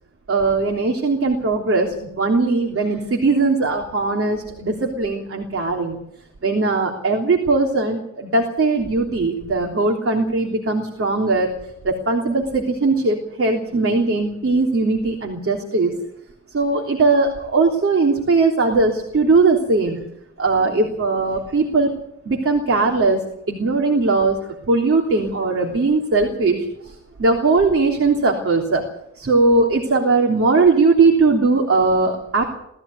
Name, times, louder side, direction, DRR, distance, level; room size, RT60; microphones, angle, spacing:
voice 1, 0.3-6.0 6.4-11.5 11.8-15.9 16.5-20.0 20.4-21.9 22.3-24.4 24.7-26.9 27.2-28.8 29.1-32.6, right 3 dB, 45° right, 1 dB, 3.4 m, -19 dB
19.0 x 15.0 x 9.6 m, 0.76 s
wide cardioid pair, 105°, 30 cm